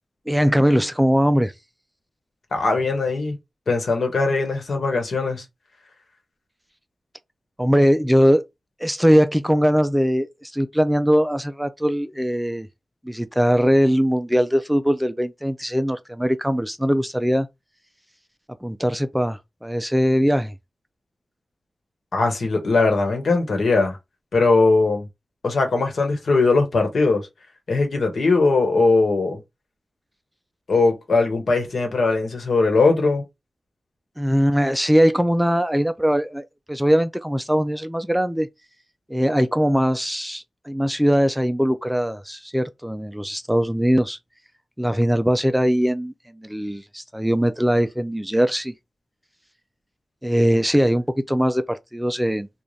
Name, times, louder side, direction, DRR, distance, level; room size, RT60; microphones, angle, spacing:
voice 1, 0.3-1.5 7.6-8.4 8.8-12.7 13.0-17.5 18.6-20.5 34.2-38.5 39.1-44.2 44.8-48.7 50.2-52.5, equal, 5° right, 0.3 m, -21 dB
voice 2, 2.5-3.4 3.7-5.4 22.1-24.0 24.3-25.1 25.4-27.3 27.7-29.4 30.7-33.2, left 3 dB, 75° left, 1.2 m, -20 dB
3.2 x 2.3 x 3.9 m
wide cardioid pair, 85°, 0 cm